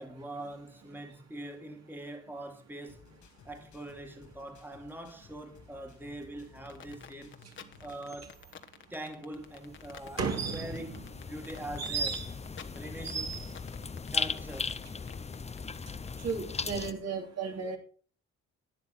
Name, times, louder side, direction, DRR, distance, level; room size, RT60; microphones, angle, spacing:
voice 1, 0.0-3.1 3.5-7.4 7.8-8.4 8.9-12.1 12.7-13.4 14.1-14.8, right 1 dB, 5° right, 1.9 m, -43 dB
sound 1, 2.9-8.2, left 5 dB, 80° left, 3.6 m, -57 dB
sound 2, 6.7-16.6, left 7 dB, 40° left, 1.3 m, -50 dB
sound 3, 9.4-16.9, left 5 dB, 20° left, 0.7 m, -38 dB
voice 2, 10.2-11.1 11.8-12.3 13.0-13.5 16.2-17.8, right 5 dB, 60° right, 3.0 m, -34 dB
12.0 x 9.4 x 4.3 m
cardioid pair, 90°, 30 cm